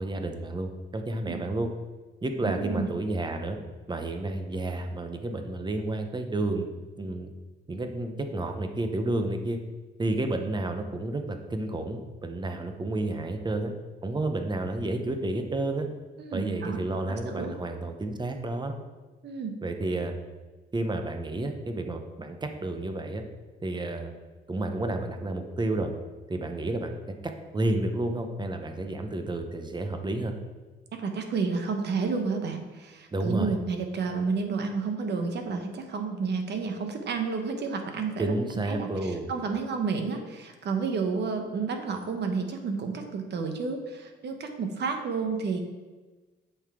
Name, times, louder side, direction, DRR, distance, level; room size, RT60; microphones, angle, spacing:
voice 1, 0.0-1.7 2.2-3.6 3.9-6.7 7.0-7.3 7.7-9.6 10.0-13.7 14.0-15.9 16.3-18.7 19.6-20.1 20.7-23.2 23.6-24.1 24.5-25.9 26.3-26.9 27.5-30.3 33.1-33.6 38.2-39.3, right 2 dB, 20° right, 5 dB, 0.9 m, -30 dB
voice 2, 2.4-2.9 16.2-16.8 17.1-17.6 19.2-19.6 30.9-38.3 38.7-45.6, right 4 dB, 60° right, 5 dB, 1.1 m, -31 dB
8.0 x 5.8 x 3.7 m, 1.3 s
cardioid pair, 90°, 20 cm